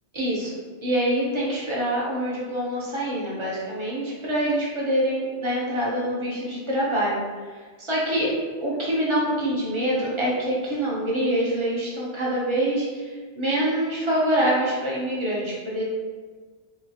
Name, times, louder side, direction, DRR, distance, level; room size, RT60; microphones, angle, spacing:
voice 1, 0.1-7.2 7.5-15.8, right 1 dB, 35° right, -5 dB, 0.5 m, -25 dB
2.9 x 2.3 x 2.7 m, 1.5 s
omnidirectional pair, 1.1 m